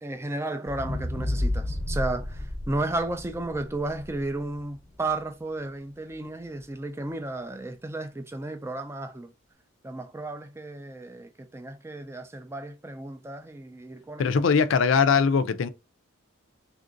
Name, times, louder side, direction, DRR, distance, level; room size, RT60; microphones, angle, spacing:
voice 1, 0.0-9.3 9.8-14.3, right 2 dB, 10° right, 0.3 m, -33 dB
sound 1, 0.7-4.9 5.4-5.5, left 1 dB, 5° left, 0.7 m, -31 dB
voice 2, 14.2-15.7, left 5 dB, 65° left, 0.4 m, -21 dB
3.5 x 2.5 x 3.7 m
head